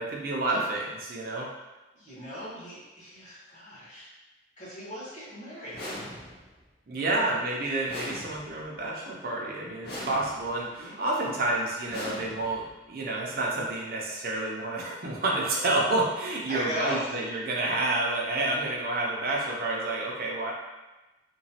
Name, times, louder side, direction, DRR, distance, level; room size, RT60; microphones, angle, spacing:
voice 1, 0.0-1.5 6.9-20.5, right 2 dB, 50° right, -2 dB, 0.5 m, -29 dB
voice 2, 1.9-4.1 4.6-5.9 7.0-7.4 10.8-11.5 16.5-17.1, equal, 40° left, -11 dB, 1.3 m, -38 dB
sound 1, 5.7-6.6 7.9-8.8 9.8-10.6 11.9-12.8, left 1 dB, 60° left, 0.8 m, -40 dB
3.0 x 2.3 x 2.8 m, 1.1 s
head